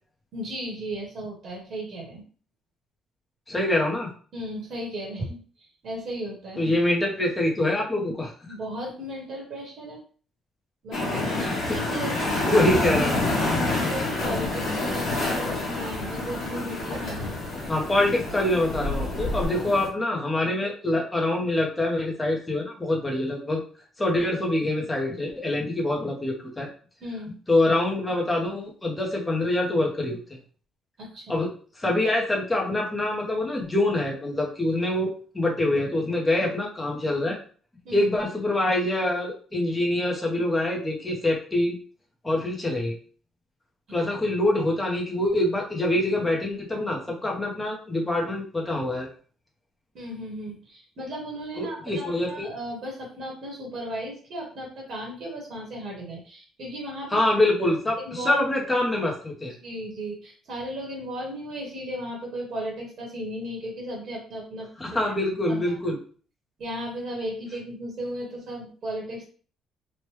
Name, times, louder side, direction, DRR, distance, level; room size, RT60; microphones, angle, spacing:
voice 1, 0.3-2.2 4.3-5.4 5.8-6.6 8.5-10.0 10.8-12.7 13.4-17.7 27.0-27.3 31.0-31.2 37.8-38.1 49.9-57.2 57.6-57.7 58.0-58.4 59.6-65.1 65.5-65.8 66.6-69.2, equal, 45° right, -2 dB, 1.1 m, -35 dB
voice 2, 3.5-4.1 6.6-8.3 11.4-11.8 12.5-13.2 17.7-23.6 24.0-26.7 27.5-30.2 31.3-31.5 31.8-35.1 35.3-37.4 37.9-41.8 42.2-43.0 43.9-49.1 51.6-52.5 57.1-59.5 64.8-66.0, left 1 dB, 10° left, -2 dB, 0.6 m, -25 dB
sound 1, 10.9-19.9, left 2 dB, 55° left, 1.1 m, -28 dB
sound 2, 14.1-19.5, left 1 dB, 90° right, 0.8 m, -37 dB
3.1 x 2.1 x 3.1 m, 0.41 s
cardioid pair, 170°, 0 cm